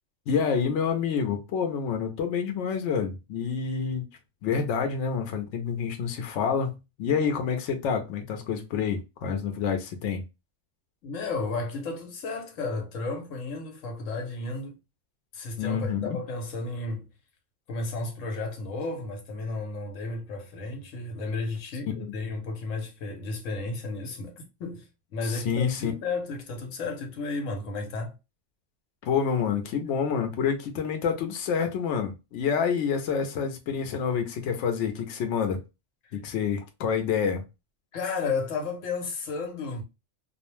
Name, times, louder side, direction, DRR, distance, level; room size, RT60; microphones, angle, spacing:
voice 1, 0.3-4.0 4.4-10.2 15.6-16.2 21.8-22.1 25.2-25.9 29.0-35.6 36.1-37.4, left 6 dB, 70° left, 0.9 m, -28 dB
voice 2, 11.0-14.8 15.3-17.1 17.7-28.1 37.9-39.8, left 3 dB, 90° left, 1.1 m, -33 dB
2.4 x 2.1 x 3.0 m
omnidirectional pair, 1.3 m